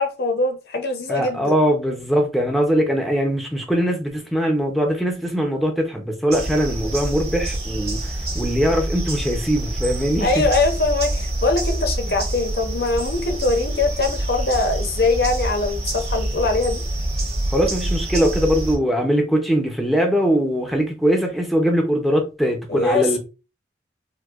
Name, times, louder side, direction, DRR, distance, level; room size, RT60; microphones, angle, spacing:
voice 1, 0.0-1.5 10.2-16.8 22.7-23.2, left 3 dB, 65° left, 0.7 m, -22 dB
voice 2, 1.1-10.4 17.5-23.2, equal, ahead, 0.6 m, -21 dB
sound 1, 6.3-18.8, right 1 dB, 35° right, 1.4 m, -26 dB
4.6 x 2.1 x 2.4 m
head